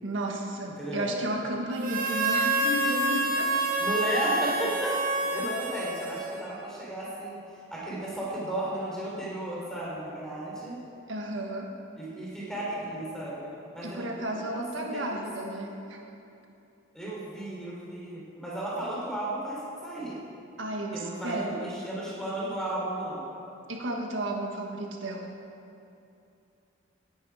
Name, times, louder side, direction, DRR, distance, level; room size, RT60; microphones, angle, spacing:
voice 1, 0.0-3.6 11.1-11.7 13.8-16.0 20.6-21.6 23.7-25.3, right 1 dB, 85° right, 1 dB, 1.5 m, -33 dB
voice 2, 0.8-1.1 3.8-7.4 7.7-10.8 12.0-14.1 14.3-15.2 16.9-20.2 20.9-23.2, right 1 dB, 5° left, -6 dB, 3.7 m, -34 dB
Harmonica, 1.8-6.7, right 2 dB, 45° right, 1.3 m, -28 dB
17.5 x 10.0 x 4.9 m, 2.7 s
head